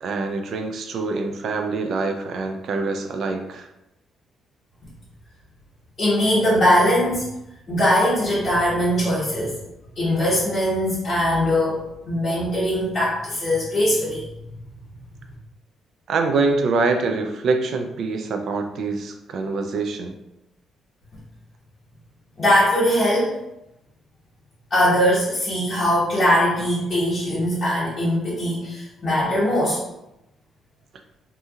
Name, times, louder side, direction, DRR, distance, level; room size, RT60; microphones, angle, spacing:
voice 1, 0.0-3.7 16.1-20.1, right 3 dB, 65° right, 5 dB, 0.4 m, -25 dB
voice 2, 6.0-7.2 7.7-9.6 10.0-14.2 22.4-23.3 24.7-29.8, equal, 40° left, -10 dB, 1.2 m, -21 dB
2.7 x 2.7 x 2.4 m, 0.89 s
cardioid pair, 90°, 0 cm